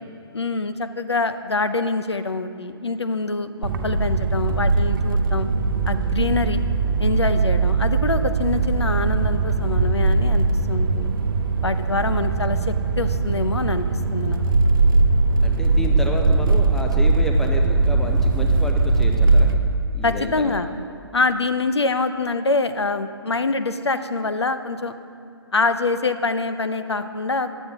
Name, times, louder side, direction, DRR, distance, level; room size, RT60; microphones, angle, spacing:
voice 1, 0.3-5.5 5.9-6.6 7.0-11.1 11.6-13.8 14.1-14.4 20.0-20.7 21.1-25.0 25.5-27.5, left 3 dB, 85° left, 10 dB, 0.5 m, -25 dB
sound 1, 3.6-19.5, right 3 dB, 55° right, 0.6 m, -20 dB
voice 2, 15.4-19.5 19.9-20.6, equal, 5° left, 1 dB, 0.4 m, -31 dB
10.0 x 8.0 x 3.5 m, 2.4 s
figure-of-eight pair, 130°, 14 cm